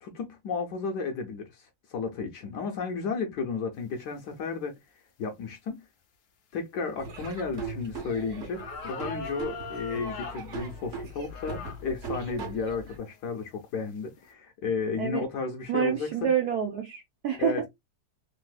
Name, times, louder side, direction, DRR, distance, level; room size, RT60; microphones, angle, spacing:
voice 1, 0.0-4.7 5.2-5.8 6.5-16.3 17.4-17.7, left 5 dB, 70° left, 1.0 m, -33 dB
Laughter / Drum, 7.0-13.0, right 3 dB, 50° right, 1.0 m, -39 dB
sound 1, 8.0-8.1 8.5-10.5 11.3-11.8 12.4-12.5 13.3-13.6, left 4 dB, 90° left, 0.6 m, -39 dB
voice 2, 15.7-17.7, right 8 dB, 75° right, 0.9 m, -28 dB
3.3 x 2.7 x 2.2 m
omnidirectional pair, 2.2 m